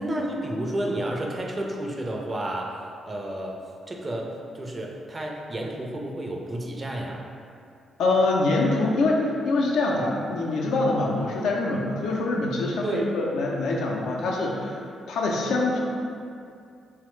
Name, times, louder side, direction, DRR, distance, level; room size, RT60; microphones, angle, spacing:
voice 1, 0.0-2.7 3.1-3.6 3.9-7.2 12.8-13.1, right 1 dB, 35° right, 0 dB, 0.4 m, -31 dB
voice 2, 8.0-14.8 15.1-15.8, left 2 dB, 70° left, -2 dB, 0.4 m, -24 dB
2.9 x 2.0 x 3.0 m, 2.4 s
hypercardioid pair, 40°, 0 cm